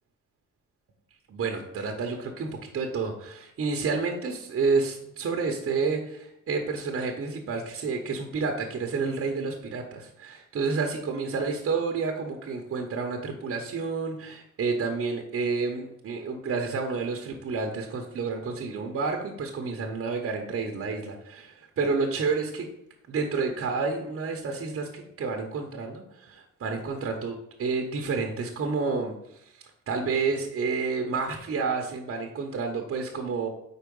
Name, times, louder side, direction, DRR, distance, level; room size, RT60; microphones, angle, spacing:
voice 1, 1.3-22.7 23.1-29.5 29.9-33.5, right 4 dB, 45° right, 2 dB, 0.9 m, -30 dB
4.7 x 4.2 x 5.3 m, 0.79 s
cardioid pair, 90°, 30 cm